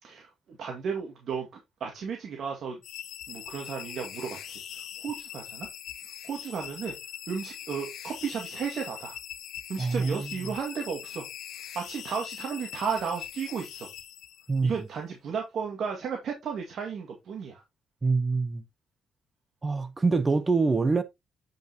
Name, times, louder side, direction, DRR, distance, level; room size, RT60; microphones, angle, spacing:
voice 1, 0.0-2.8 3.3-5.7 6.2-6.9 7.3-9.2 9.7-11.2 11.8-13.9 14.6-17.6, right 6 dB, 65° right, 2.1 m, -34 dB
sound 1, 2.8-14.7, left 10 dB, 75° left, 1.2 m, -42 dB
voice 2, 9.8-10.5 14.5-14.9 18.0-18.6 19.6-21.0, right 4 dB, 25° right, 0.9 m, -25 dB
9.1 x 5.4 x 2.9 m
cardioid pair, 90°, 0 cm